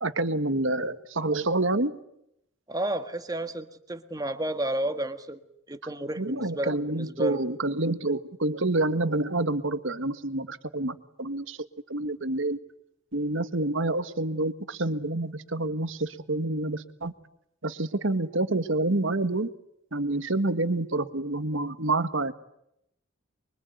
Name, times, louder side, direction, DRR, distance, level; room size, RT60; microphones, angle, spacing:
voice 1, 0.0-2.0 6.2-12.6 13.1-17.1 17.6-19.5 19.9-22.3, right 2 dB, 70° right, 10 dB, 1.6 m, -28 dB
voice 2, 2.7-5.4 5.7-7.4, right 1 dB, 20° right, 8 dB, 1.7 m, -31 dB
25.0 x 23.5 x 9.2 m, 0.79 s
head